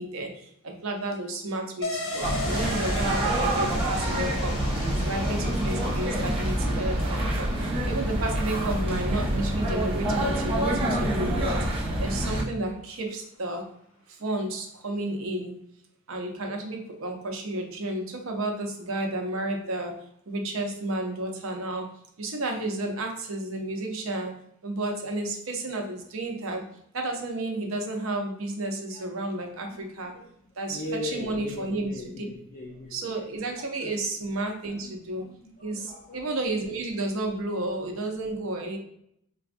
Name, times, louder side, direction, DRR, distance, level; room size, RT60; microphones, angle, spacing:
voice 1, 0.0-4.6 4.9-11.6 12.0-13.6 14.1-15.5 16.1-19.9 20.3-21.9 22.2-24.3 24.6-26.6 26.9-30.1 30.6-32.2 32.9-35.2 35.6-38.8, right 2 dB, 75° right, 3 dB, 0.6 m, -32 dB
sound 1, 1.8-11.2 11.5-11.6, left 2 dB, 85° left, 0.8 m, -37 dB
sound 2, 2.2-12.4, right 1 dB, 25° right, 0.6 m, -27 dB
voice 2, 30.7-33.1 33.5-33.9 34.8-34.9 35.2-35.3 35.6-36.3, left 1 dB, 45° left, -3 dB, 0.5 m, -39 dB
3.9 x 2.3 x 2.5 m, 0.72 s
head